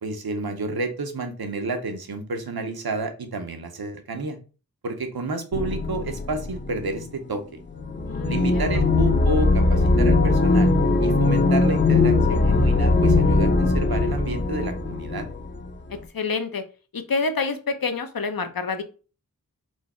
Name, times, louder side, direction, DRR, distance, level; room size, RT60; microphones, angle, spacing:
voice 1, 0.0-4.4 4.8-7.4 8.2-10.7 11.0-15.3, right 3 dB, 90° right, 6 dB, 0.9 m, -30 dB
sound 1, 5.5-7.1 7.7-15.7, left 3 dB, 30° left, 0.6 m, -20 dB
voice 2, 8.1-8.8 16.1-16.6 16.9-18.8, left 4 dB, 70° left, 8 dB, 0.8 m, -27 dB
4.6 x 2.3 x 4.2 m, 0.35 s
wide cardioid pair, 40°, 36 cm